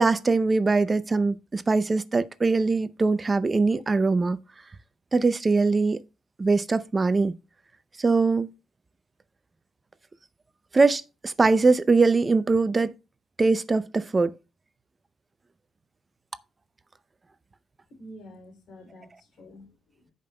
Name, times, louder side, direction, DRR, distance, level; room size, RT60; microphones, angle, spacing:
voice 1, 0.0-4.4 5.1-6.0 6.4-7.3 8.0-8.5 10.7-12.9 13.4-14.3, right 3 dB, 25° right, 0.5 m, -22 dB
voice 2, 17.9-20.1, equal, 70° left, 3.0 m, -48 dB
15.5 x 5.3 x 2.2 m
cardioid pair, 90°, 0 cm